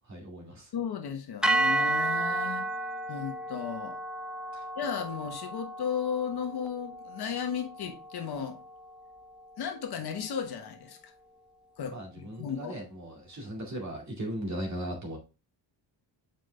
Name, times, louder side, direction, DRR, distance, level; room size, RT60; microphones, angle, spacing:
voice 1, 0.1-0.7 4.5-4.6 11.9-15.2, right 1 dB, 35° right, 2.2 m, -37 dB
voice 2, 0.7-2.7 3.1-4.0 4.8-8.6 9.6-11.1 11.8-12.8, left 7 dB, 55° left, 1.3 m, -35 dB
sound 1, 1.4-9.7, right 2 dB, ahead, 0.4 m, -33 dB
7.5 x 5.3 x 3.3 m
cardioid pair, 170°, 47 cm